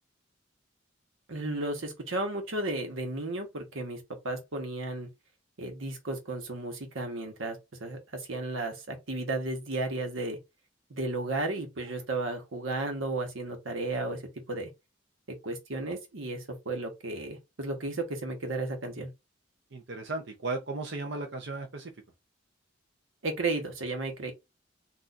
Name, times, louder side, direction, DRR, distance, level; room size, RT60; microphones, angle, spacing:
voice 1, 1.3-4.0 4.2-5.1 5.6-10.4 10.9-14.2 14.5-14.7 15.4-19.1 23.2-24.3, right 2 dB, 90° right, 1.1 m, -33 dB
voice 2, 19.7-21.9, right 3 dB, 60° right, 0.6 m, -35 dB
4.1 x 2.4 x 2.4 m
head